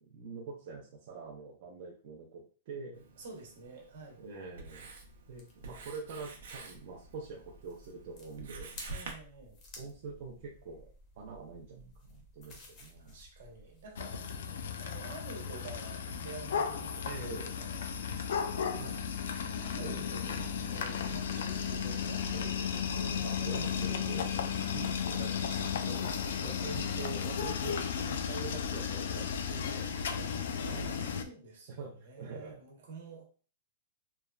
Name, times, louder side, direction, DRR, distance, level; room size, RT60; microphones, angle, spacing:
voice 1, 0.1-3.1 4.2-4.9 5.3-9.0 9.8-10.9 11.2-13.2 14.2-15.0 17.0-17.5 18.8-19.0 19.5-20.5 23.2-25.3 25.8-26.1 26.4-32.6, right 4 dB, 40° right, -2 dB, 0.4 m, -45 dB
Writing, 2.9-9.1, right 3 dB, 90° right, 0.6 m, -49 dB
voice 2, 3.2-4.2 8.9-9.6 12.4-12.6 13.0-17.2 17.6-18.7 19.6-20.2 20.6-24.1 24.4-24.7 25.1-26.5 30.6-33.2, right 3 dB, 65° right, 1 dB, 0.9 m, -49 dB
sound 1, 4.7-14.0, left 2 dB, 25° left, 0.6 m, -55 dB
sound 2, 14.0-31.2, left 7 dB, 75° left, 0.3 m, -34 dB
3.0 x 2.2 x 2.3 m, 0.39 s
supercardioid pair, 175°, 0 cm